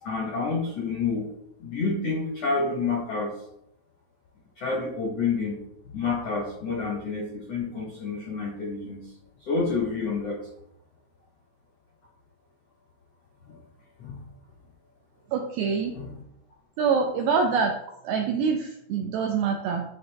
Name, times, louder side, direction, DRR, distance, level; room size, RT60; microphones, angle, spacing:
voice 1, 0.0-1.3 1.6-3.3 4.6-5.6 5.9-9.0 9.5-10.4 13.5-13.6 14.0-14.2 15.9-16.1, left 4 dB, 75° left, -3 dB, 1.4 m, -28 dB
voice 2, 15.3-15.9 16.8-17.8 18.0-19.8, right 5 dB, 85° right, 3 dB, 2.2 m, -25 dB
10.5 x 3.6 x 3.5 m, 0.77 s
omnidirectional pair, 5.1 m